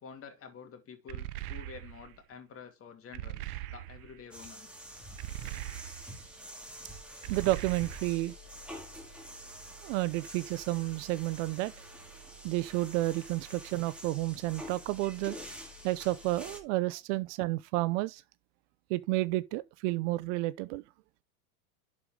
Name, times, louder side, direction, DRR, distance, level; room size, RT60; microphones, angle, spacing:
voice 1, 0.0-4.8, left 6 dB, 30° left, 2.5 m, -49 dB
sound 1, 1.1-2.2 3.1-4.2 5.2-6.3 7.2-8.3, right 15 dB, 85° right, 0.9 m, -41 dB
sound 2, 4.3-16.6, right 1 dB, ahead, 2.1 m, -47 dB
voice 2, 7.3-8.3 9.8-11.7 12.4-15.4 15.8-18.2 18.9-20.8, right 18 dB, 55° right, 0.6 m, -31 dB
11.5 x 4.8 x 3.7 m
supercardioid pair, 130°, 43 cm